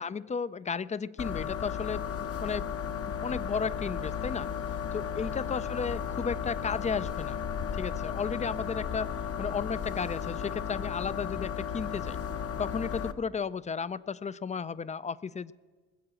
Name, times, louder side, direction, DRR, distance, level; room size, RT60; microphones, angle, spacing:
voice 1, 0.0-2.7 3.1-7.4 7.7-9.1 9.4-12.2 12.6-15.5, left 5 dB, 25° left, 18 dB, 0.4 m, -34 dB
sound 1, 1.2-13.1, left 7 dB, 50° left, 0.9 m, -34 dB
20.0 x 7.9 x 7.6 m, 1.4 s
cardioid pair, 90°, 30 cm